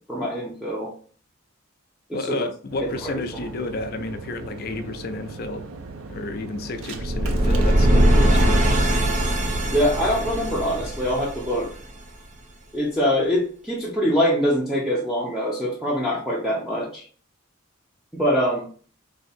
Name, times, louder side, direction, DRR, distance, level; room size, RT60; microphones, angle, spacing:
voice 1, 0.1-0.9 2.1-2.4 3.0-3.4 9.7-11.7 12.7-17.0 18.1-18.7, equal, 5° right, 0.7 m, -24 dB
voice 2, 2.1-5.6 6.1-8.7 16.1-16.2, left 2 dB, 45° left, 0.5 m, -31 dB
sound 1, 2.7-10.9, right 4 dB, 85° right, 0.6 m, -39 dB
sound 2, 6.9-12.0, right 1 dB, 35° right, 0.6 m, -20 dB
3.4 x 2.8 x 4.2 m
head